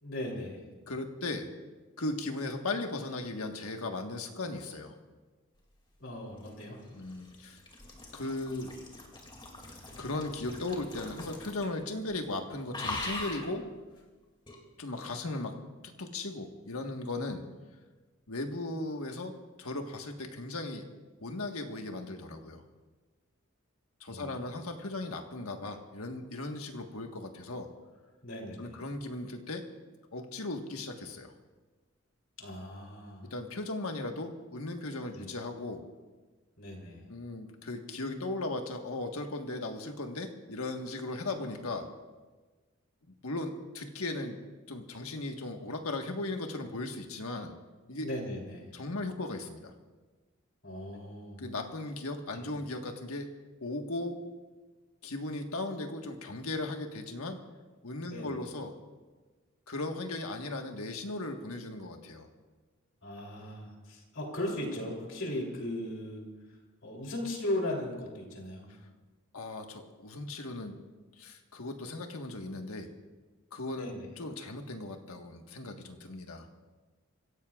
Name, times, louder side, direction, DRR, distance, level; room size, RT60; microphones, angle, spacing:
voice 1, 0.0-0.7 6.0-6.8 24.1-24.5 28.2-28.8 32.4-33.3 35.1-35.3 36.6-37.0 48.0-48.7 50.6-51.5 52.3-52.5 58.1-58.4 63.0-66.2 66.5-66.6 66.8-68.7 73.7-74.1, left 1 dB, 65° left, 0 dB, 3.3 m, -38 dB
voice 2, 0.9-1.5 2.0-4.9 6.9-7.6 8.1-8.7 10.0-13.7 14.8-15.6 16.0-17.4 18.3-19.3 19.6-20.8 21.2-22.6 24.0-27.7 28.6-29.6 30.1-31.3 33.2-35.8 37.1-41.9 43.1-44.4 44.7-47.5 47.9-48.1 48.7-49.7 51.4-53.3 53.6-54.2 55.0-57.4 57.8-58.8 59.7-62.3 69.3-70.7 71.2-72.9 73.5-73.9 74.2-76.5, left 2 dB, 85° left, 4 dB, 1.5 m, -37 dB
sound 1, 6.1-11.8 12.1-12.4 12.7-13.5 14.5-14.6, left 2 dB, 25° left, 2.5 m, -42 dB
26.5 x 16.0 x 2.4 m, 1.3 s
head